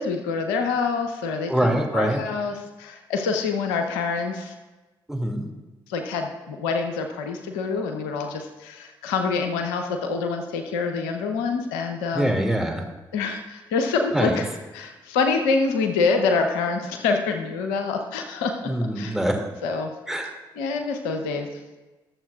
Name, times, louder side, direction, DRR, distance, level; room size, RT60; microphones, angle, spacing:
voice 1, 0.0-4.5 5.9-12.4 13.1-14.5 14.7-18.6 19.0-19.2 19.6-19.9 20.6-21.5, left 4 dB, 85° left, 5 dB, 0.8 m, -26 dB
voice 2, 1.5-2.2 5.1-5.5 12.1-12.8 14.1-14.4 18.6-19.4 20.1-20.3, right 1 dB, 5° right, 1 dB, 2.3 m, -24 dB
21.0 x 7.3 x 2.4 m, 1.2 s
hypercardioid pair, 45°, 11 cm